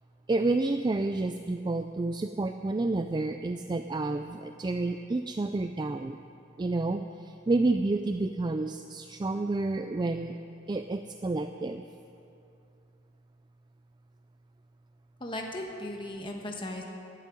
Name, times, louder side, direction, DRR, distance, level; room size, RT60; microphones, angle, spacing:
voice 1, 0.3-6.2 6.6-10.3 10.7-11.8, right 2 dB, 20° right, 8 dB, 0.3 m, -29 dB
voice 2, 15.2-16.8, left 1 dB, 25° left, 1 dB, 1.3 m, -37 dB
12.0 x 9.0 x 9.7 m, 2.6 s
head